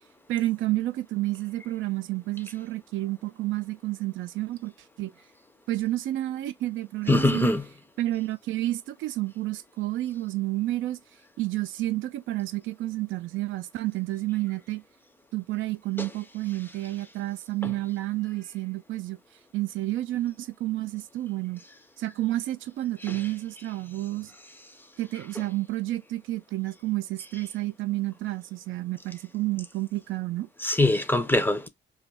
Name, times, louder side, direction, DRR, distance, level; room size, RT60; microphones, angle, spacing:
voice 1, 0.3-4.7 5.0-5.1 5.7-7.5 8.0-11.0 11.4-14.8 15.3-19.2 19.5-21.6 22.0-24.3 25.0-30.5, right 16 dB, 75° right, 0.4 m, -30 dB
voice 2, 7.1-7.6 16.0-16.1 30.6-31.7, left 2 dB, 10° left, 0.5 m, -22 dB
2.5 x 2.4 x 4.0 m
cardioid pair, 90°, 20 cm